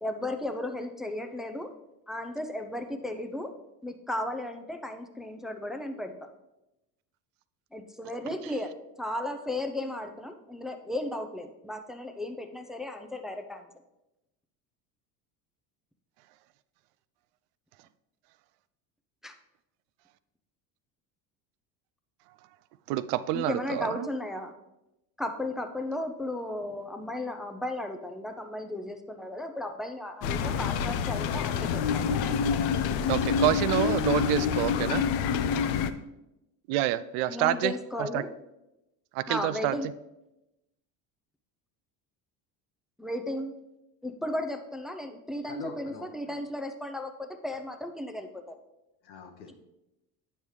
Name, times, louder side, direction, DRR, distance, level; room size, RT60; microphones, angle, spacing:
voice 1, 0.0-1.7 2.1-3.5 3.8-6.3 7.7-8.7 9.0-13.7 19.2-19.3 23.3-24.5 25.2-32.0 37.3-38.3 39.3-39.9 43.0-43.5 44.0-48.5, left 1 dB, ahead, 6 dB, 0.5 m, -35 dB
voice 2, 22.9-24.1 33.1-35.0 36.7-37.7 38.0-38.2 39.1-39.8, right 14 dB, 70° right, 15 dB, 0.5 m, -27 dB
sound 1, 30.2-35.9, left 6 dB, 65° left, 0.7 m, -27 dB
voice 3, 45.5-46.4 49.0-49.5, left 4 dB, 85° left, 4 dB, 1.2 m, -43 dB
9.0 x 5.4 x 3.2 m, 0.92 s
hypercardioid pair, 85°, 49 cm